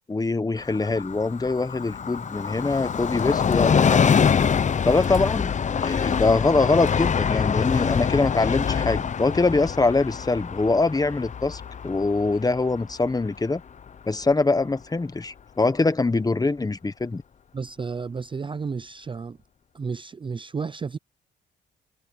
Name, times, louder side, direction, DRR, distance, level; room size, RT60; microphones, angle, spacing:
voice 1, 0.1-4.1 4.8-5.5 5.8-13.6 14.1-17.2, left 3 dB, 20° left, 1.4 m, -23 dB
Train, 0.6-13.9 14.2-14.3, left 7 dB, 35° left, 0.8 m, -25 dB
sound 1, 3.2-3.7 5.0-5.3 6.7-7.0, right 8 dB, 55° right, 5.2 m, -52 dB
voice 2, 17.5-19.4 19.7-21.0, right 5 dB, 25° right, 0.5 m, -32 dB
cardioid pair, 90°, 20 cm